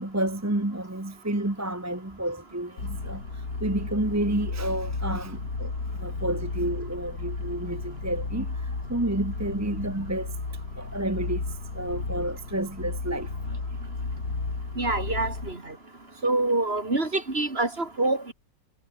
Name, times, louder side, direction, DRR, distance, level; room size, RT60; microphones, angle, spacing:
voice 1, 0.0-5.7 6.0-10.3 10.8-11.4 11.7-13.3, right 1 dB, 10° right, 1.1 m, -30 dB
sound 1, 2.8-15.5, left 3 dB, 55° left, 4.3 m, -33 dB
voice 2, 14.8-15.7 16.2-18.3, right 2 dB, 30° right, 3.6 m, -26 dB
omnidirectional pair, 2.0 m